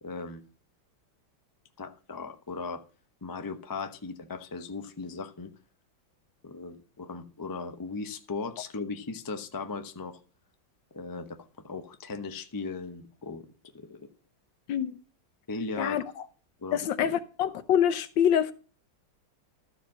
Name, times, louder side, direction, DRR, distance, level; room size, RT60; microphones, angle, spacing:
voice 1, 0.0-0.4 1.8-2.8 3.2-5.5 6.4-10.2 10.9-13.4 13.7-14.1 15.5-16.0 16.6-17.1, left 4 dB, 25° left, 0.4 m, -37 dB
voice 2, 16.7-18.5, left 9 dB, 75° left, 1.5 m, -25 dB
13.5 x 4.9 x 7.4 m
omnidirectional pair, 2.1 m